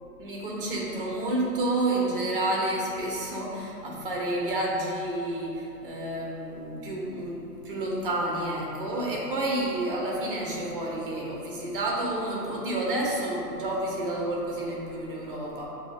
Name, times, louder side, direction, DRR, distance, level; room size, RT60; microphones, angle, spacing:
voice 1, 0.2-15.6, right 1 dB, 35° right, -3 dB, 0.7 m, -30 dB
7.0 x 2.7 x 2.3 m, 2.9 s
hypercardioid pair, 140°, 49 cm